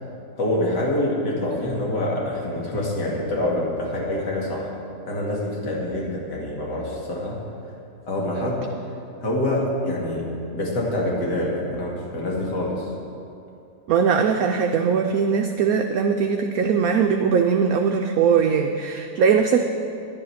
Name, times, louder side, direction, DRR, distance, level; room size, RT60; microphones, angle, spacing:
voice 1, 0.4-4.7 5.0-7.4 8.1-8.7 9.2-12.9, left 1 dB, 75° left, -3 dB, 2.7 m, -26 dB
voice 2, 13.9-19.6, right 6 dB, 65° right, 4 dB, 1.0 m, -20 dB
11.5 x 11.0 x 5.8 m, 2.6 s
omnidirectional pair, 1.9 m